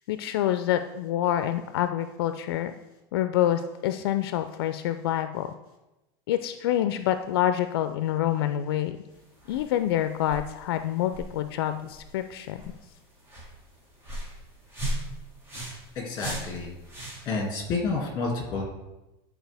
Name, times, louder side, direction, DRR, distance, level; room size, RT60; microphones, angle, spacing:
voice 1, 0.1-2.7 3.1-5.6 6.3-9.0 9.5-12.6, left 11 dB, 85° left, 10 dB, 0.4 m, -27 dB
sound 1, 9.1-17.5, right 1 dB, 20° right, 1.7 m, -39 dB
voice 2, 16.0-16.7 17.3-18.7, left 3 dB, 35° left, 1 dB, 2.1 m, -29 dB
10.5 x 4.3 x 3.4 m, 0.97 s
supercardioid pair, 155°, 12 cm